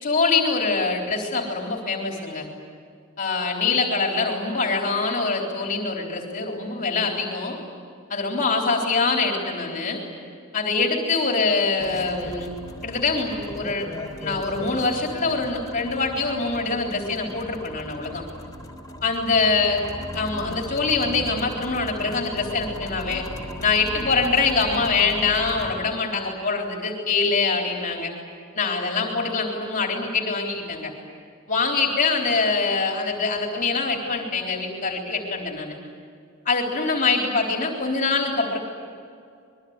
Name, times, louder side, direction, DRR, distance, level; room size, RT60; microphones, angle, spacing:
voice 1, 0.0-2.5 3.2-7.6 8.1-10.0 10.5-12.5 12.8-13.9 14.2-18.2 19.0-19.8 20.1-23.2 23.6-28.1 28.6-30.9 31.5-35.7 36.5-38.6, left 4 dB, 40° left, 1 dB, 3.8 m, -24 dB
sound 1, 11.8-25.7, equal, 20° left, 3.3 m, -37 dB
26.5 x 22.0 x 9.6 m, 2.3 s
head